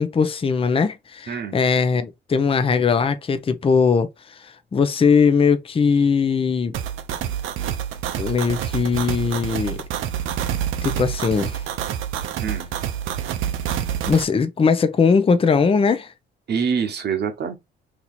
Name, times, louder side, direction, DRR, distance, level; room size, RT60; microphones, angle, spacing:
voice 1, 0.0-4.1 4.7-6.7 8.2-9.8 10.8-11.6 14.1-16.1, left 5 dB, 30° left, 0.6 m, -19 dB
voice 2, 1.3-1.6 12.4-12.7 16.5-17.5, right 6 dB, 55° right, 1.1 m, -25 dB
sound 1, 6.7-14.2, right 10 dB, 85° right, 0.6 m, -27 dB
2.9 x 2.8 x 4.1 m
cardioid pair, 90°, 20 cm